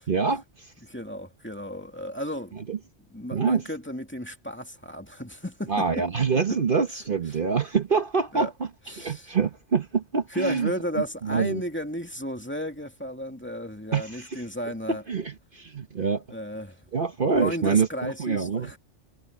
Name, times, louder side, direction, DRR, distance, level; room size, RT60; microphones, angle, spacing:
voice 1, 0.1-0.7 2.5-2.8 3.3-3.6 5.7-8.7 9.0-11.6 13.9-14.4 14.9-16.2 16.9-18.7, right 5 dB, 50° right, 1.3 m, -26 dB
voice 2, 0.8-2.6 3.1-5.9 6.5-6.6 8.3-8.5 8.9-9.3 10.3-15.0 16.3-16.8 17.4-18.8, equal, 10° left, 2.2 m, -33 dB
omnidirectional pair, 1.2 m